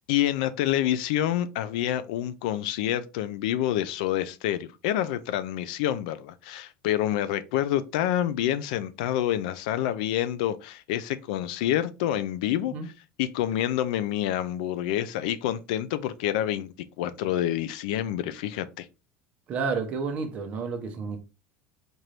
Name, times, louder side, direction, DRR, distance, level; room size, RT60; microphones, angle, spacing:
voice 1, 0.1-12.7 13.2-18.9, left 12 dB, 85° left, 0.4 m, -27 dB
voice 2, 19.5-21.2, right 5 dB, 30° right, 0.7 m, -30 dB
4.4 x 2.6 x 3.2 m
cardioid pair, 170°, 4 cm